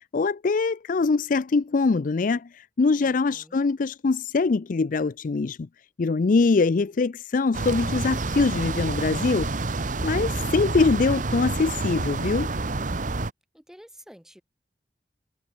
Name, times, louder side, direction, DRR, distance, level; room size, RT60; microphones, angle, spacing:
voice 1, 0.1-5.6 6.0-9.5 10.0-12.5, left 4 dB, 50° left, 0.4 m, -23 dB
voice 2, 3.0-3.6 13.5-14.4, equal, 5° right, 4.2 m, -50 dB
sound 1, 7.5-13.3, right 3 dB, 45° right, 1.0 m, -28 dB
head